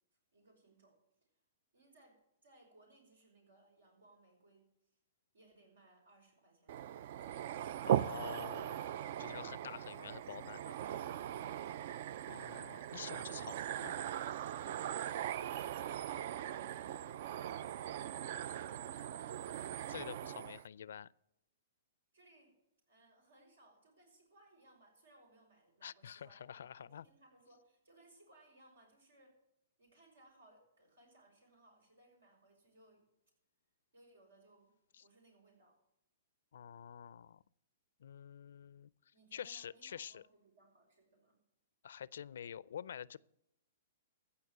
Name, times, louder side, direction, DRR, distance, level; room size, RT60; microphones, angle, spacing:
voice 1, 0.3-1.0 1.7-4.7 5.3-7.5 15.5-16.0 16.5-19.7 22.1-22.6 22.9-29.4 29.8-33.0 33.9-34.7 35.0-35.8 39.1-41.4, right 2 dB, 90° right, 5.9 m, -65 dB
sound 1, 6.7-20.6, right 10 dB, 55° right, 0.3 m, -40 dB
voice 2, 7.8-8.9 9.2-10.7 12.3-13.9 19.9-21.1 25.8-27.0 34.9-35.0 36.5-37.4 38.0-38.9 39.3-40.2 41.8-43.2, left 8 dB, 75° left, 0.4 m, -48 dB
15.5 x 5.8 x 7.9 m
hypercardioid pair, 140°, 0 cm